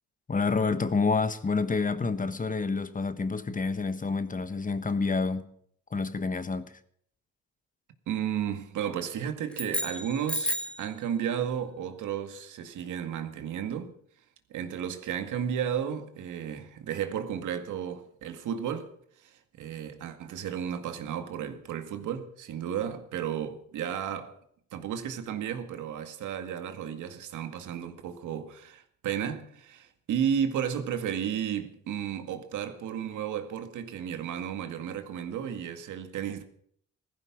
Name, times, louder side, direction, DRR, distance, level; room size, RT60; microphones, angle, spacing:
voice 1, 0.3-5.5 5.9-6.7, left 4 dB, 25° left, 1.3 m, -28 dB
voice 2, 8.1-13.9 14.5-18.9 19.2-24.4 24.7-36.4, right 8 dB, 80° right, 2.1 m, -33 dB
sound 1, 9.5-10.9, equal, 5° left, 2.0 m, -32 dB
16.0 x 14.5 x 6.1 m
cardioid pair, 90°, 30 cm